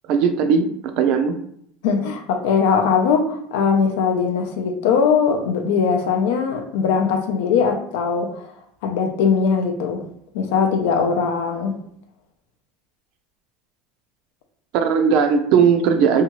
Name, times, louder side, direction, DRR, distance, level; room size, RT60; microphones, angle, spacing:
voice 1, 0.1-0.7 1.0-1.3 14.7-16.2, right 6 dB, 60° right, 7 dB, 0.4 m, -17 dB
voice 2, 1.8-8.5 8.8-10.0 10.3-11.7, left 6 dB, 80° left, 4 dB, 0.5 m, -20 dB
2.8 x 2.3 x 2.9 m, 0.70 s
supercardioid pair, 140°, 0 cm